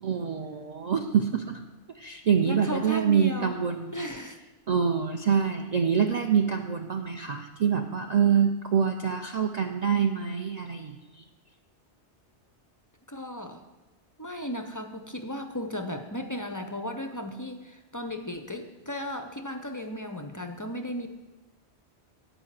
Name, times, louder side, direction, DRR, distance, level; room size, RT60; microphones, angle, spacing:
voice 1, 0.0-1.6 1.9-4.0 4.7-11.0, right 7 dB, 50° right, 4 dB, 0.5 m, -25 dB
voice 2, 2.4-3.6 3.9-4.4 13.1-13.6 14.2-21.1, equal, 35° left, 6 dB, 0.3 m, -35 dB
10.0 x 4.8 x 7.3 m, 1.1 s
omnidirectional pair, 1.2 m